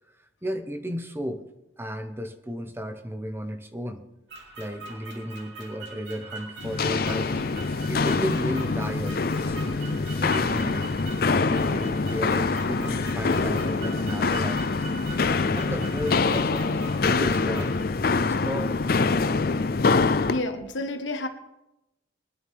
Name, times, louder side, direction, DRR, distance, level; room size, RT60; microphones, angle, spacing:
voice 1, 0.2-1.4 1.8-4.0 4.6-7.4 7.9-10.9 11.2-15.0 15.5-17.7 18.2-18.8, equal, 10° right, 1.0 m, -34 dB
sound 1, 4.3-17.8, right 3 dB, 70° right, 3.3 m, -43 dB
Walk footsteps, 6.6-20.4, left 4 dB, 50° left, 0.5 m, -25 dB
voice 2, 20.3-21.3, left 2 dB, 90° left, 1.3 m, -29 dB
22.0 x 9.9 x 3.6 m
head